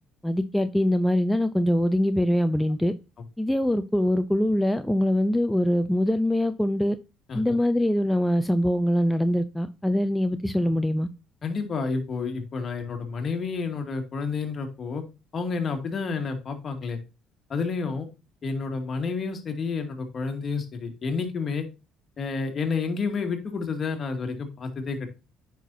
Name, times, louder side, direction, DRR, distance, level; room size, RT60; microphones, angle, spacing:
voice 1, 0.2-2.9 3.4-7.0 7.3-11.1, left 1 dB, 5° left, 0.6 m, -23 dB
voice 2, 11.4-15.0 15.3-17.0 17.5-18.1 18.4-21.7 22.2-25.1, left 4 dB, 45° left, 2.1 m, -30 dB
9.1 x 5.9 x 2.7 m
supercardioid pair, 80°, 0 cm